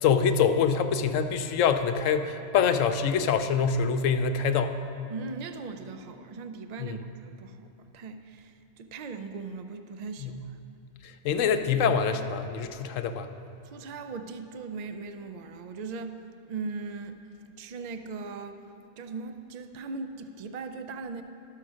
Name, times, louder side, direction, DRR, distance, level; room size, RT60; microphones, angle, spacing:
voice 1, 0.0-4.8 6.8-7.0 10.2-10.4 11.0-13.3, left 6 dB, 80° left, 8 dB, 1.0 m, -25 dB
voice 2, 5.1-7.7 7.9-10.4 13.6-16.2 16.5-17.2 17.5-18.6 19.0-21.2, right 4 dB, 80° right, 8 dB, 0.3 m, -39 dB
12.0 x 6.6 x 6.3 m, 2.6 s
omnidirectional pair, 1.3 m